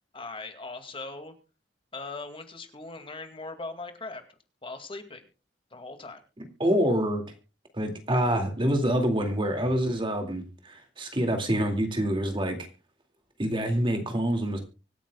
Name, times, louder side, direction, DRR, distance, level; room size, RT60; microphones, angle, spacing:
voice 1, 0.1-1.3 1.9-4.2 4.6-5.3 5.7-6.2, left 3 dB, 30° left, 7 dB, 2.2 m, -39 dB
voice 2, 6.6-7.2 7.7-12.6 13.4-14.6, equal, 30° right, 5 dB, 2.4 m, -26 dB
25.0 x 9.2 x 2.3 m, 0.32 s
head